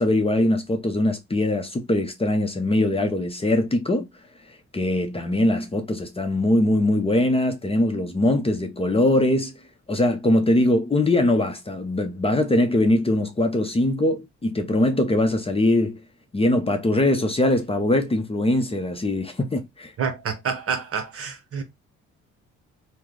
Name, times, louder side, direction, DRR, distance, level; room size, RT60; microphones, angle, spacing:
voice 1, 0.0-4.1 4.7-9.5 9.9-16.0 16.3-19.9, left 1 dB, 20° left, 0.7 m, -22 dB
voice 2, 20.0-21.6, right 6 dB, 50° right, 1.0 m, -28 dB
3.0 x 2.2 x 3.7 m
cardioid pair, 90°, 30 cm